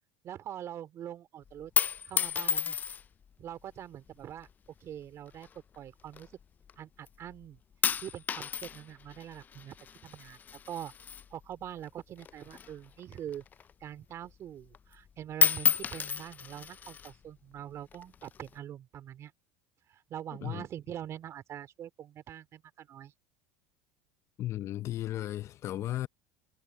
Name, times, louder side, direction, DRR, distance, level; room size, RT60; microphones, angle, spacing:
voice 1, 0.2-1.7 2.0-2.8 3.4-4.5 4.8-5.5 5.7-6.3 6.8-7.6 8.0-9.7 10.0-10.4 10.6-10.9 11.3-13.4 13.8-19.3 19.9-23.1, right 10 dB, 45° right, 3.4 m, -43 dB
sound 1, 1.5-3.2 4.1-4.5 5.3-6.7 7.1-7.5 7.8-11.9 12.2-13.9 14.2-14.3 14.7-15.1 15.3-17.1 17.9-18.5, left 7 dB, 25° left, 0.3 m, -32 dB
voice 2, 24.4-26.1, left 13 dB, 45° left, 0.7 m, -35 dB
supercardioid pair, 105°, 7 cm